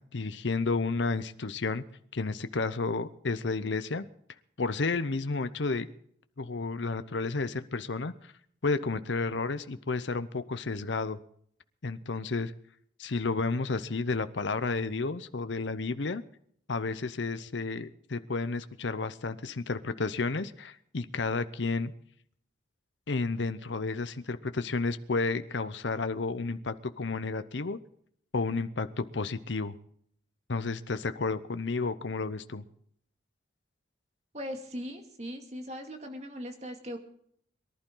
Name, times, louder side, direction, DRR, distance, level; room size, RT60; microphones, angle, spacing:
voice 1, 0.0-1.8 2.1-4.0 4.6-5.9 6.4-8.3 8.6-11.2 11.8-12.5 13.0-16.2 16.7-21.9 23.1-27.8 28.3-29.7 30.5-32.6, left 3 dB, 75° left, 11 dB, 0.8 m, -31 dB
voice 2, 34.3-37.0, equal, 35° right, 4 dB, 2.3 m, -39 dB
23.0 x 11.5 x 3.9 m, 0.65 s
head